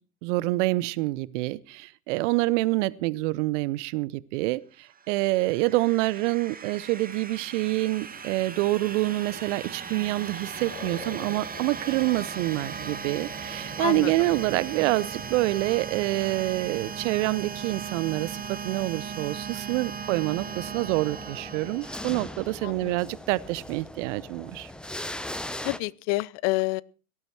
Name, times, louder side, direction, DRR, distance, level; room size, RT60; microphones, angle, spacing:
voice 1, 0.2-4.6 5.1-24.7, right 19 dB, 55° right, 0.8 m, -27 dB
sound 1, 4.9-22.6, right 6 dB, 20° right, 1.8 m, -38 dB
sound 2, 8.1-19.4, left 4 dB, 25° left, 3.7 m, -50 dB
voice 2, 13.8-14.1 22.6-23.0 25.6-26.8, left 22 dB, 45° left, 0.6 m, -28 dB
sound 3, 20.3-25.8, left 1 dB, ahead, 0.7 m, -39 dB
18.0 x 12.0 x 4.4 m
hypercardioid pair, 90°, 45 cm